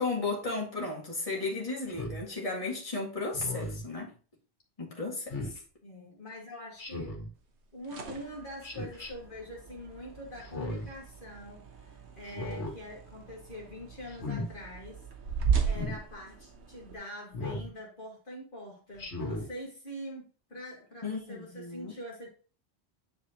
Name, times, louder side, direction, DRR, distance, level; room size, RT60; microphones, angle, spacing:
voice 1, 0.0-4.1 4.8-5.5 21.0-21.9, left 3 dB, 30° left, 2.1 m, -34 dB
Speech synthesizer, 1.9-2.2 3.3-3.8 5.3-5.6 6.8-7.3 8.6-9.1 10.4-10.9 12.2-12.7 14.1-14.5 15.7-16.0 17.3-17.7 19.0-19.5, left 2 dB, 85° left, 2.1 m, -36 dB
voice 2, 5.8-7.2 7.7-15.0 15.6-22.3, equal, 50° left, 2.1 m, -44 dB
sound 1, 7.6-16.9, right 6 dB, 80° right, 1.4 m, -36 dB
9.7 x 4.8 x 3.0 m
omnidirectional pair, 1.1 m